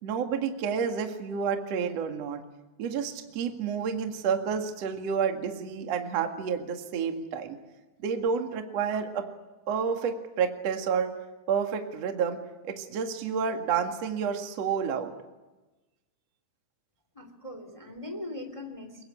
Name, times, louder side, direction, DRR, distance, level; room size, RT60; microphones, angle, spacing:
voice 1, 0.0-2.4 2.8-7.6 8.0-9.3 9.7-11.1 11.5-12.4 12.6-15.1, right 6 dB, 50° right, 5 dB, 2.2 m, -29 dB
voice 2, 17.1-19.0, left 1 dB, 15° left, 7 dB, 1.3 m, -40 dB
23.5 x 22.5 x 10.0 m, 1.1 s
omnidirectional pair, 5.6 m